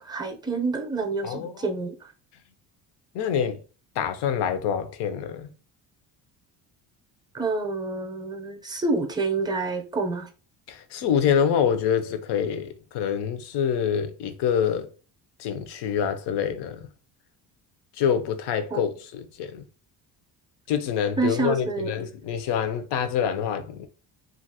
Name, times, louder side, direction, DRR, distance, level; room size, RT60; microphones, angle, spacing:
voice 1, 0.0-2.1 7.3-10.3 18.7-18.9 21.2-21.9, right 3 dB, 10° right, 0.6 m, -28 dB
voice 2, 1.2-1.6 3.1-3.6 4.0-5.5 10.7-14.9 15.4-16.9 17.9-19.7 20.7-23.9, left 8 dB, 65° left, 0.7 m, -26 dB
2.8 x 2.5 x 2.7 m
cardioid pair, 95°, 44 cm